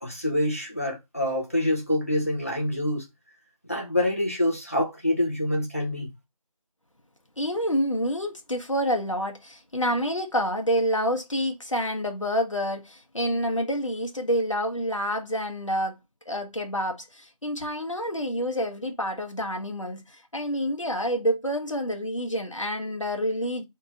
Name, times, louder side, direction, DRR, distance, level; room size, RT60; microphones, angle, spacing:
voice 1, 0.0-3.1 3.7-6.1, left 1 dB, 25° left, 1.0 m, -26 dB
voice 2, 7.4-16.0 16.3-23.6, equal, 55° left, 1.3 m, -28 dB
4.1 x 3.2 x 3.8 m
figure-of-eight pair, 175°, 19 cm